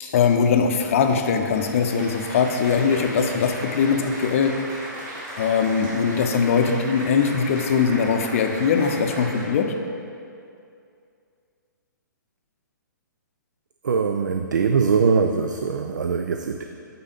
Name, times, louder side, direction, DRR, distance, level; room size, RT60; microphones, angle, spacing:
voice 1, 0.0-4.6 5.4-9.7, left 6 dB, 40° left, 5 dB, 0.6 m, -21 dB
Applause, 1.2-9.4, right 1 dB, 30° right, 1.8 m, -36 dB
voice 2, 13.8-16.6, right 5 dB, 65° right, 6 dB, 0.4 m, -22 dB
8.8 x 4.1 x 5.1 m, 2.5 s
figure-of-eight pair, 120°, 11 cm